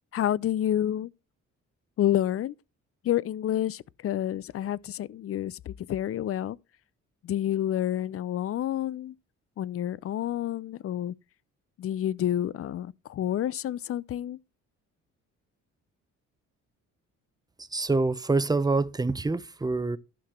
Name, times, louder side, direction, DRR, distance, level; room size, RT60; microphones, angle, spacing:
voice 1, 0.1-1.1 2.0-2.5 3.0-6.6 7.2-9.2 9.6-11.1 11.8-14.4, left 11 dB, 50° left, 0.5 m, -29 dB
voice 2, 17.7-20.0, right 3 dB, 15° right, 0.8 m, -26 dB
12.0 x 5.9 x 4.3 m
cardioid pair, 90°, 30 cm